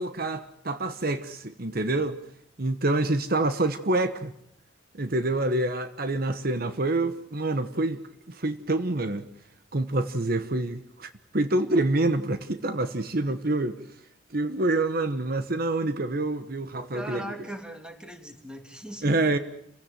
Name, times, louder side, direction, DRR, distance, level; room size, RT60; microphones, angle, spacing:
voice 1, 0.0-2.2 2.6-4.3 4.9-8.0 8.3-9.3 9.7-13.8 14.3-17.3 19.0-19.4, right 2 dB, 55° right, 1.2 m, -27 dB
voice 2, 16.9-19.4, right 1 dB, 5° right, 3.0 m, -39 dB
28.5 x 17.0 x 9.0 m
head